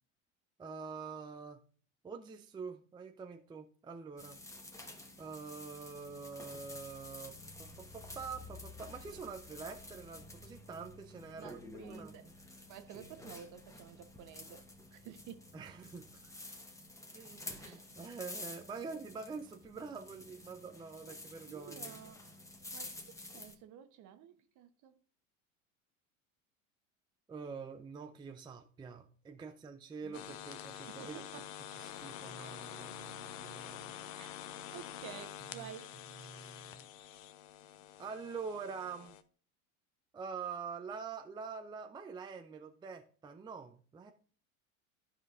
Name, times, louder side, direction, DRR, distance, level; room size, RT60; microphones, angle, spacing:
voice 1, 0.6-1.6 2.0-4.4 5.2-7.3 7.6-11.6 11.9-12.4 15.5-16.4 17.1-22.0 27.3-31.2 31.7-33.9 35.5-35.7 36.2-36.9 38.0-39.2 40.1-44.1, right 5 dB, 10° right, 0.5 m, -46 dB
sound 1, 4.2-23.5, left 2 dB, 5° left, 1.1 m, -50 dB
voice 2, 11.4-12.3 12.7-15.5 17.6-17.9 21.0-22.2 22.7-24.9 30.0-30.2 30.9-31.5 34.2-34.4 34.7-36.0, right 9 dB, 45° right, 1.0 m, -52 dB
sound 2, 30.1-39.2, left 11 dB, 70° left, 0.8 m, -47 dB
12.5 x 5.0 x 2.5 m
hypercardioid pair, 90°, 41 cm